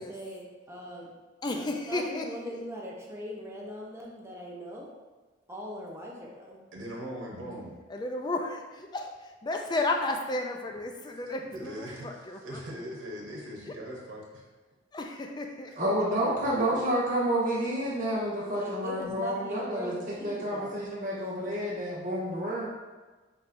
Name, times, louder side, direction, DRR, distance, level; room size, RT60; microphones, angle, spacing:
voice 1, 0.0-1.1 1.6-4.9 5.5-6.6 18.6-20.8, equal, 15° right, -3 dB, 0.7 m, -40 dB
voice 2, 1.4-2.2 7.9-9.1 9.4-12.6 14.9-15.8, left 2 dB, 20° left, 3 dB, 0.4 m, -33 dB
voice 3, 6.7-7.7 11.5-14.4 15.7-15.8 16.2-16.9 18.6-18.7, equal, 85° right, -2 dB, 0.9 m, -41 dB
voice 4, 15.8-22.7, right 1 dB, 40° right, -7 dB, 1.3 m, -29 dB
5.9 x 3.3 x 2.5 m, 1.3 s
head